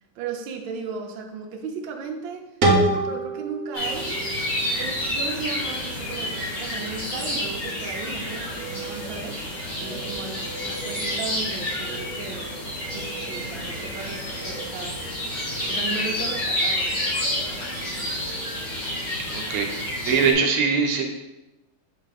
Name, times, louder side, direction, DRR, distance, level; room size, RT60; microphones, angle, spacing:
voice 1, 0.1-2.4 2.7-4.2 4.8-12.5 12.9-15.0 15.6-17.2, right 5 dB, 70° right, 2 dB, 1.4 m, -36 dB
sound 1, 2.6-5.5, right 2 dB, 50° right, 1.1 m, -25 dB
sound 2, 3.7-20.3, left 1 dB, 55° left, 2.3 m, -29 dB
voice 2, 19.3-21.0, right 5 dB, 90° right, 3 dB, 1.7 m, -22 dB
6.5 x 3.6 x 4.1 m, 0.98 s
omnidirectional pair, 2.3 m